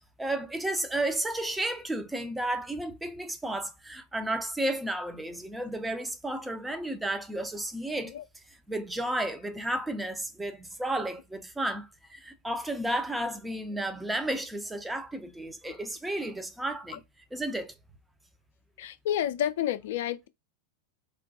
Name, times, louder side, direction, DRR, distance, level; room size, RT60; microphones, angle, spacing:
voice 1, 0.2-8.1 8.7-17.0 17.3-17.7, right 1 dB, 5° right, 0.5 m, -32 dB
voice 2, 18.8-20.3, left 11 dB, 55° left, 0.4 m, -30 dB
4.2 x 2.2 x 2.7 m
figure-of-eight pair, 90°, 0 cm